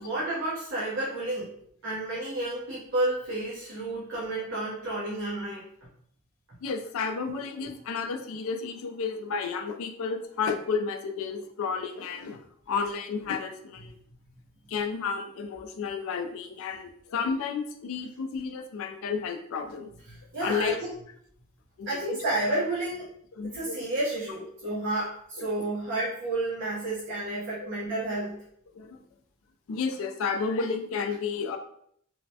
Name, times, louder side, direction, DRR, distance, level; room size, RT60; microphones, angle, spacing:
voice 1, 0.0-1.5 1.8-5.7 20.1-20.9 21.9-23.1 23.5-28.4, right 2 dB, 55° right, -9 dB, 0.8 m, -31 dB
voice 2, 6.6-14.0 14.7-19.9 20.4-20.8 21.8-22.2 23.3-23.8 25.4-25.5 28.7-29.0 29.7-31.6, left 5 dB, 65° left, 7 dB, 0.3 m, -32 dB
3.0 x 2.1 x 2.7 m, 0.68 s
head